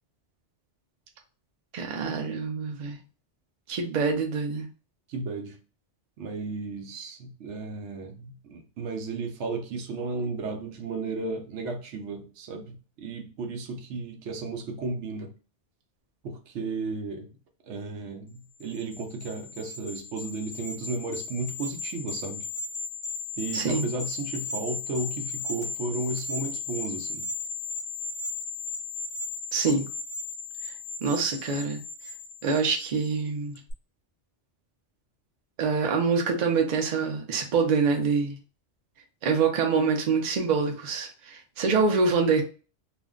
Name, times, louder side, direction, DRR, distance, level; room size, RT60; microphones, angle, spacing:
voice 1, 1.7-3.0 3.7-4.7 23.5-23.9 29.5-29.9 31.0-31.8 32.4-33.6 35.6-38.4 39.2-42.4, right 5 dB, 50° right, 0.6 m, -25 dB
voice 2, 5.1-5.6 6.2-15.3 16.2-17.3 17.7-22.5 23.4-27.3, right 3 dB, 80° right, 0.9 m, -34 dB
sound 1, 18.6-33.2 33.6-33.7, left 4 dB, 80° left, 0.9 m, -36 dB
2.5 x 2.1 x 3.6 m
omnidirectional pair, 1.2 m